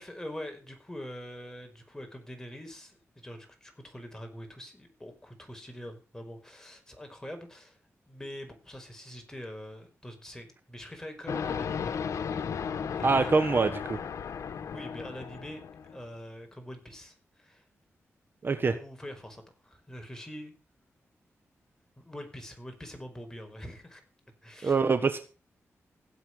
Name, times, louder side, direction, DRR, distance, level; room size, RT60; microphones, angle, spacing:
voice 1, 0.0-7.8 8.1-12.5 12.9-13.7 14.7-15.6 15.9-17.6 18.6-20.5 22.0-24.0 24.4-24.8, equal, 10° left, 4 dB, 5.1 m, -44 dB
sound 1, 11.3-16.0, left 7 dB, 85° left, 1.2 m, -35 dB
voice 2, 13.0-14.0 18.4-18.7 24.6-25.2, right 4 dB, 45° right, 9 dB, 1.3 m, -24 dB
16.5 x 8.0 x 6.5 m, 0.35 s
wide cardioid pair, 90°, 5 cm